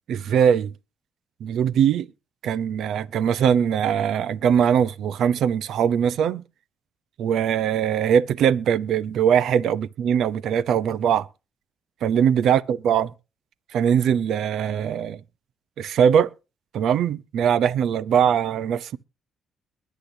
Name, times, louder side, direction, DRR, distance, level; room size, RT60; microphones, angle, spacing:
voice 1, 0.1-0.7 1.4-2.1 2.4-6.4 7.2-11.3 12.0-13.1 13.7-15.2 15.8-16.3 16.7-19.0, right 8 dB, 75° right, 0.8 m, -21 dB
22.5 x 8.5 x 2.8 m
cardioid pair, 90°, 0 cm